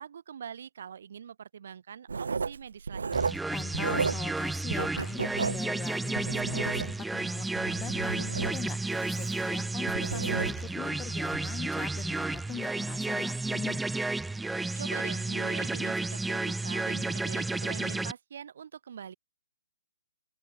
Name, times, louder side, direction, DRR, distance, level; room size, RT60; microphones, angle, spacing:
voice 1, 0.0-3.3 14.7-19.1, right 8 dB, 55° right, 2.6 m, -43 dB
Writing, 2.1-4.4 4.7-7.2 7.6-10.8 11.3-11.5, right 5 dB, 75° right, 0.5 m, -33 dB
sound 1, 3.1-18.1, right 2 dB, 5° right, 0.7 m, -32 dB
voice 2, 3.5-13.8, left 10 dB, 15° left, 1.3 m, -42 dB
open air
hypercardioid pair, 145°, 0 cm